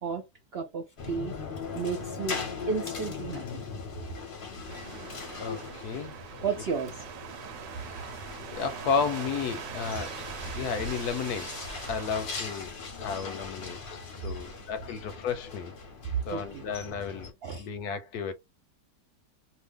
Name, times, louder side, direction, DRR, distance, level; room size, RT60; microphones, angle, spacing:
voice 1, 0.5-1.3 1.7-2.4 2.7-3.6 6.4-7.0 16.3-16.6 17.4-17.7, right 5 dB, 70° right, 0.6 m, -32 dB
sound 1, 1.0-17.3, left 5 dB, 45° left, 0.7 m, -40 dB
sound 2, 4.7-12.3, right 7 dB, 85° right, 1.3 m, -42 dB
voice 2, 5.4-6.4 7.8-8.1 8.5-10.2 10.5-11.5 11.9-15.7 16.3-17.3 17.6-18.3, left 6 dB, 75° left, 1.0 m, -33 dB
2.7 x 2.4 x 3.5 m
omnidirectional pair, 1.9 m